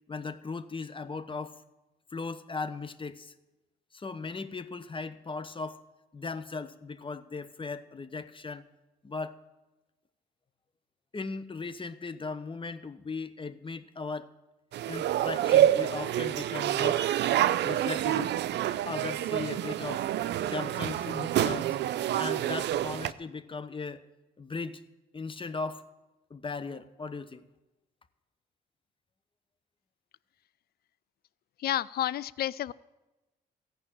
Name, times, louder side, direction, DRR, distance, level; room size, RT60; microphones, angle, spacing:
voice 1, 0.1-1.6 2.1-3.3 3.9-5.8 6.1-8.6 9.0-9.4 11.1-14.3 14.9-17.1 17.6-18.3 18.9-20.1 20.4-21.8 22.1-24.0 24.4-24.8 25.1-25.8 26.3-27.4, left 4 dB, 30° left, 12 dB, 0.9 m, -37 dB
sound 1, 14.7-23.1, right 12 dB, 70° right, 0.5 m, -27 dB
voice 2, 31.6-32.7, left 12 dB, 55° left, 21 dB, 0.4 m, -30 dB
15.0 x 5.7 x 8.8 m, 1.1 s
supercardioid pair, 60°, 19 cm